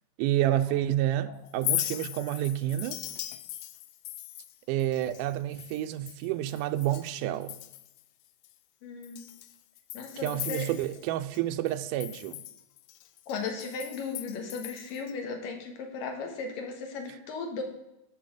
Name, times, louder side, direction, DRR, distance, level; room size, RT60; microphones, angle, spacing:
voice 1, 0.2-3.0 4.7-7.6 10.2-12.4, right 13 dB, 85° right, 1.8 m, -29 dB
Chink clink, 1.5-7.1 7.4-8.0 8.4-8.5 9.0-11.4 11.7-15.1, left 15 dB, 90° left, 2.4 m, -38 dB
voice 2, 8.8-9.3 9.9-10.7 13.3-17.6, left 4 dB, 70° left, 3.2 m, -36 dB
12.5 x 6.1 x 5.0 m
omnidirectional pair, 4.2 m